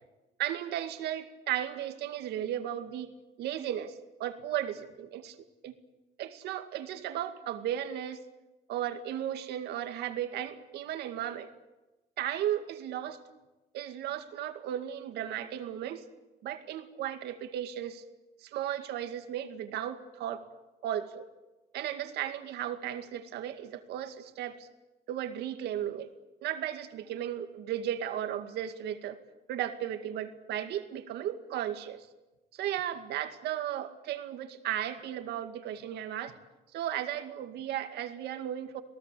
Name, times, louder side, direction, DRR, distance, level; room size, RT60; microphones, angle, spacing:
voice 1, 0.4-3.1 3.4-5.4 5.6-5.7 6.2-8.2 8.7-11.5 12.2-13.2 13.7-16.0 16.4-18.0 18.4-20.4 20.8-21.3 21.7-24.7 25.1-26.1 26.4-29.2 29.5-32.1 32.5-36.4 36.7-38.8, right 11 dB, 80° right, 8 dB, 2.3 m, -35 dB
28.0 x 18.5 x 8.5 m, 1.1 s
cardioid pair, 110°, 17 cm